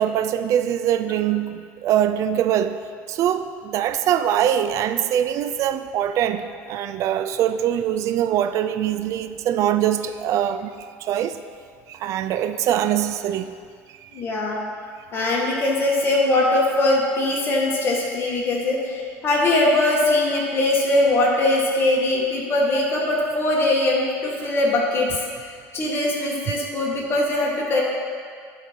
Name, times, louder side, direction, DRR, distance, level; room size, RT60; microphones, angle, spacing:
voice 1, 0.0-2.8 3.1-11.4 11.9-13.5 13.9-14.2, right 10 dB, 55° right, 10 dB, 0.4 m, -23 dB
voice 2, 14.1-14.6 15.1-25.2 25.7-27.8, left 2 dB, 40° left, -3 dB, 1.9 m, -21 dB
11.5 x 3.9 x 4.5 m, 2.1 s
supercardioid pair, 105°, 6 cm